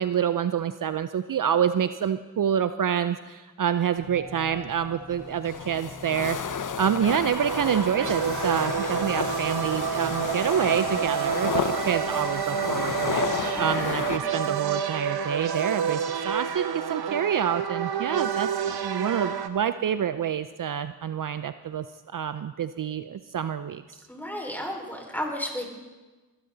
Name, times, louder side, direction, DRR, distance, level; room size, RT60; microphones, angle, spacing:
voice 1, 0.0-13.2 13.6-21.8 22.1-23.8, right 8 dB, 55° right, 12 dB, 0.6 m, -27 dB
sound 1, 4.0-10.6, left 2 dB, 25° left, 4.1 m, -44 dB
sound 2, 5.2-14.2, left 7 dB, 50° left, 0.8 m, -32 dB
sound 3, 7.3-19.5, right 7 dB, 75° right, 1.0 m, -29 dB
voice 2, 13.5-14.4 24.1-25.6, equal, 5° left, 0 dB, 4.8 m, -34 dB
20.5 x 13.0 x 4.0 m, 1.2 s
cardioid pair, 45°, 39 cm